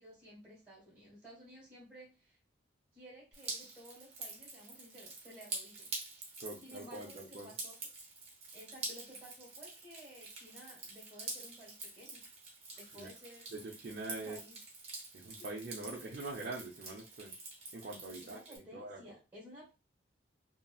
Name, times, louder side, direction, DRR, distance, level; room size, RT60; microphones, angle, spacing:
voice 1, 0.0-2.4 2.9-5.9 6.6-7.8 8.5-12.2 12.7-13.5 14.1-14.6 18.1-19.7, equal, 10° right, 1.4 m, -54 dB
Drip, 3.3-18.6, right 3 dB, 35° right, 0.9 m, -47 dB
voice 2, 6.4-7.5 12.9-13.1 13.5-14.4 15.1-17.3 17.7-18.4 18.7-19.0, right 2 dB, 50° right, 0.5 m, -44 dB
2.8 x 2.8 x 2.3 m
head